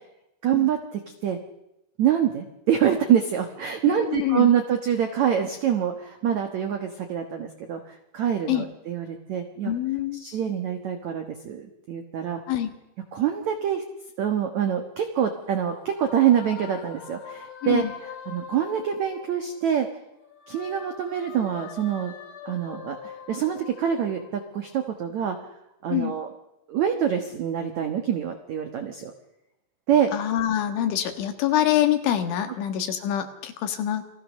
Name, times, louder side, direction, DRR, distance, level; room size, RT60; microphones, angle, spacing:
voice 1, 0.4-1.4 2.0-9.7 10.1-12.4 13.1-13.8 14.2-19.9 20.5-22.1 22.4-25.4 25.8-26.3 26.7-29.1 29.9-30.1, right 9 dB, 80° right, 6 dB, 1.6 m, -25 dB
voice 2, 3.9-4.5 8.5-8.7 9.6-10.2 12.5-12.7 17.6-17.9 25.9-26.2 30.1-34.0, left 11 dB, 80° left, 7 dB, 4.1 m, -25 dB
sound 1, 14.8-19.8 20.2-24.9, left 8 dB, 65° left, 4.2 m, -43 dB
28.5 x 19.5 x 6.5 m, 0.94 s
omnidirectional pair, 5.4 m